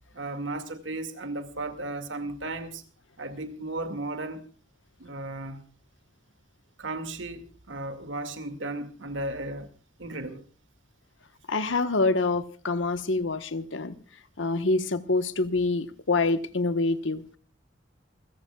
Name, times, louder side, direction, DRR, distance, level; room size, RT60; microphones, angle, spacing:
voice 1, 0.1-2.8 3.2-4.4 5.0-5.6 6.8-9.7 10.0-10.4, right 2 dB, 85° right, 2.2 m, -35 dB
voice 2, 11.5-13.9 14.4-17.4, left 3 dB, 85° left, 1.3 m, -26 dB
29.0 x 15.0 x 2.4 m
head